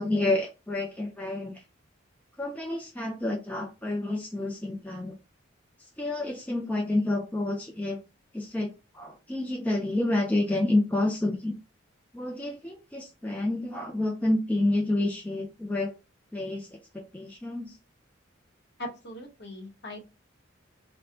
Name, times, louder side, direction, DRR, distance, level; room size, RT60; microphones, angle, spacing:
voice 1, 0.0-1.6 2.4-5.1 6.0-8.0 8.3-11.5 12.1-16.0 16.3-17.8, left 2 dB, 10° left, 0 dB, 0.4 m, -29 dB
voice 2, 18.8-20.0, left 1 dB, 55° left, 2 dB, 1.0 m, -40 dB
2.5 x 2.2 x 3.7 m, 0.28 s
head